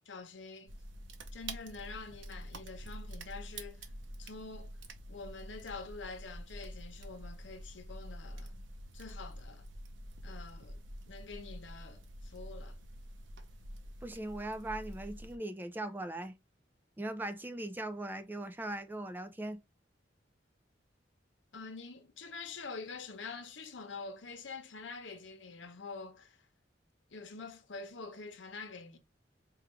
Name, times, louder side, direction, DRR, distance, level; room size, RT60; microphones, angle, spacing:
voice 1, 0.1-0.7 1.3-3.9 4.2-4.8 5.1-8.6 8.9-9.7 10.2-10.8 11.1-12.8 21.5-26.5 27.1-29.0, left 4 dB, 80° left, 0.9 m, -46 dB
sound 1, 0.7-15.4, right 1 dB, 90° right, 0.8 m, -47 dB
voice 2, 14.0-16.4 17.0-19.6, right 1 dB, 10° right, 0.4 m, -39 dB
4.8 x 2.4 x 3.1 m
head